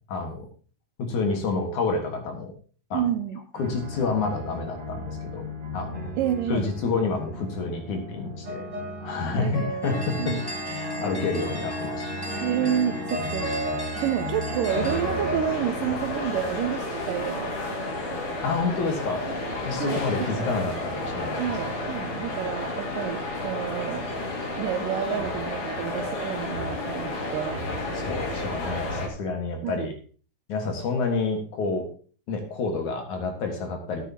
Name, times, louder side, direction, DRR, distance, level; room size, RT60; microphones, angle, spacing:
voice 1, 0.1-0.5 1.0-2.5 2.9-3.1 3.5-5.5 5.7-6.1 6.5-8.7 9.0-12.1 18.4-19.2 19.6-21.5 27.9-29.9 30.5-31.9 32.3-34.1, left 4 dB, 60° left, 4 dB, 2.7 m, -29 dB
voice 2, 2.9-3.4 6.2-6.7 9.4-9.7 10.2-10.4 12.4-12.9 13.3-13.5 14.0-17.5 19.8-20.4 21.4-24.1 24.6-27.6 29.6-29.9, right 10 dB, 80° right, 9 dB, 2.1 m, -29 dB
sound 1, 3.5-15.4, equal, 30° right, 2.8 m, -34 dB
sound 2, 9.8-15.0, equal, 10° left, 1.2 m, -34 dB
sound 3, 14.7-29.1, left 2 dB, 45° left, 2.6 m, -31 dB
13.5 x 10.0 x 2.8 m, 0.41 s
omnidirectional pair, 4.3 m